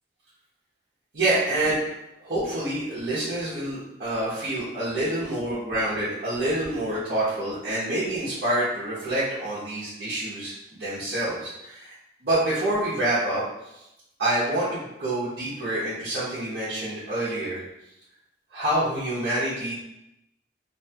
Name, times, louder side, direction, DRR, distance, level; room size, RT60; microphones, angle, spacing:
voice 1, 1.1-1.9 2.2-11.9 12.2-13.4 14.2-17.6 18.5-19.7, right 1 dB, 65° right, -13 dB, 0.9 m, -27 dB
2.7 x 2.3 x 2.7 m, 0.87 s
head